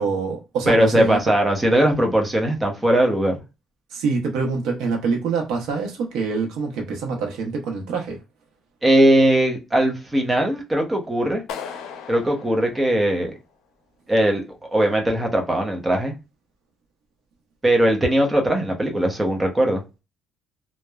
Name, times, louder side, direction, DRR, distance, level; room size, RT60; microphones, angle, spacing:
voice 1, 0.0-1.2 3.9-8.2, right 4 dB, 85° right, 0.7 m, -25 dB
voice 2, 0.7-3.4 8.8-11.4 12.1-13.3 14.1-16.1 17.6-19.8, right 1 dB, 15° right, 0.7 m, -19 dB
Clapping, 11.5-13.5, left 7 dB, 85° left, 0.5 m, -37 dB
3.0 x 2.0 x 2.2 m
cardioid pair, 130°, 0 cm